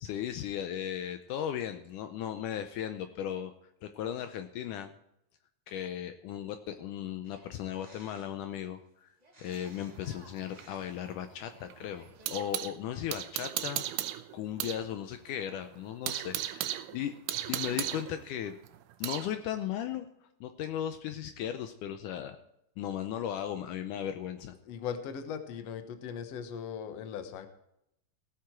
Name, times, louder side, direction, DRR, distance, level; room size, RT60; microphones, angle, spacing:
voice 1, 0.0-3.5 3.8-4.9 5.7-9.1 9.4-13.8 14.3-17.2 17.5-18.6 19.0-20.1 20.4-22.4 22.8-24.5, left 10 dB, 80° left, 8 dB, 2.1 m, -36 dB
sound 1, 7.2-8.5 9.2-12.5 12.8-13.3, right 2 dB, 15° right, 1.4 m, -58 dB
sound 2, 9.5-12.8 13.1-14.8 15.1-15.2 15.6-19.3, right 13 dB, 80° right, 2.1 m, -36 dB
voice 2, 24.6-27.5, left 7 dB, 60° left, 8 dB, 1.9 m, -39 dB
17.5 x 8.5 x 4.6 m, 0.79 s
omnidirectional pair, 3.9 m